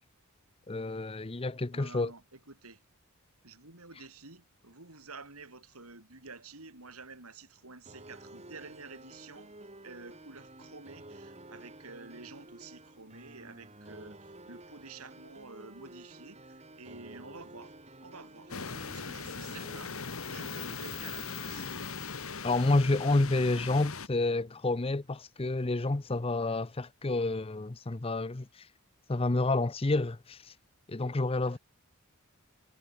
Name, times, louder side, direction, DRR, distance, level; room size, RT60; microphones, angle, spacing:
voice 1, 0.7-2.1 22.4-28.7 29.1-30.5 30.9-31.6, left 2 dB, 25° left, 0.6 m, -29 dB
voice 2, 1.7-2.8 3.4-9.5 9.8-17.8 18.0-18.6 18.9-20.0 20.2-21.7 31.4-31.6, right 3 dB, 85° right, 6.0 m, -50 dB
sound 1, 7.9-19.8, right 1 dB, 30° right, 6.8 m, -51 dB
sound 2, 18.5-24.1, left 5 dB, 70° left, 2.8 m, -39 dB
head